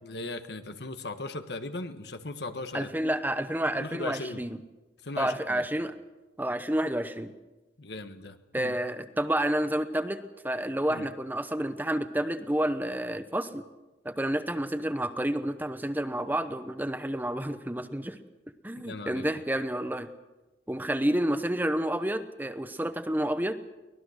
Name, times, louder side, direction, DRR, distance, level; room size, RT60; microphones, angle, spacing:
voice 1, 0.0-3.1 3.7-4.4 5.0-5.6 7.8-8.7 10.9-11.1 18.8-19.3, left 2 dB, 70° left, 8 dB, 1.4 m, -38 dB
voice 2, 2.7-4.6 5.2-5.9 6.4-7.3 8.5-13.6 14.0-18.2 18.6-20.1 20.7-23.5, right 1 dB, 10° right, 10 dB, 0.9 m, -29 dB
24.0 x 19.0 x 6.5 m, 1.1 s
head